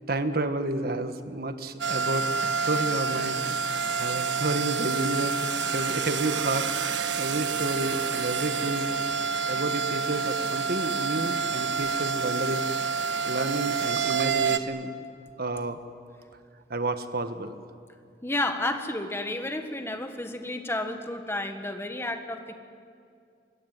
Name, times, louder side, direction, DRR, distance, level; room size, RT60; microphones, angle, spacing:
voice 1, 0.1-3.4 4.0-8.9 9.5-12.7 13.2-14.9 15.4-15.8 16.7-17.6, right 2 dB, 55° right, 9 dB, 1.5 m, -30 dB
sound 1, 1.8-14.6, right 5 dB, 80° right, 1.2 m, -28 dB
voice 2, 18.2-22.5, left 1 dB, 15° left, 6 dB, 1.7 m, -31 dB
25.0 x 21.0 x 9.3 m, 2.3 s
head